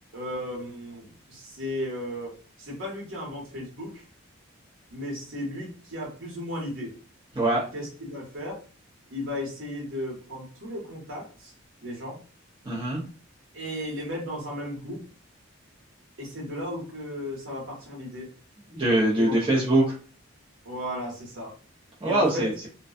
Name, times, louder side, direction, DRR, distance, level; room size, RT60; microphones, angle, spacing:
voice 1, 0.1-4.0 4.9-6.9 7.7-8.6 9.1-11.5 11.8-12.1 13.5-15.0 16.2-18.3 19.1-19.6 20.6-21.5 22.0-22.5, left 1 dB, 75° right, -3 dB, 1.2 m, -35 dB
voice 2, 12.7-13.0 18.7-19.8 22.0-22.5, right 1 dB, 25° right, -5 dB, 0.6 m, -22 dB
2.5 x 2.2 x 2.4 m, 0.39 s
head